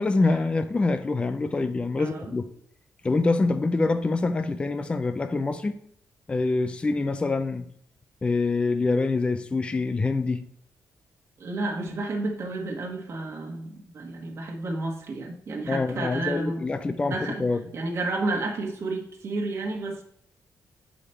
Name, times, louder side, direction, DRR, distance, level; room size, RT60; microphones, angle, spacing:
voice 1, 0.0-2.5 3.0-5.7 6.3-7.6 8.2-10.4 15.7-17.6, left 3 dB, 15° left, 9 dB, 0.4 m, -25 dB
voice 2, 2.0-2.3 11.4-16.6 17.1-17.4 17.7-20.0, right 2 dB, 45° right, 0 dB, 1.4 m, -31 dB
8.2 x 5.0 x 4.3 m, 0.67 s
wide cardioid pair, 155°, 6 cm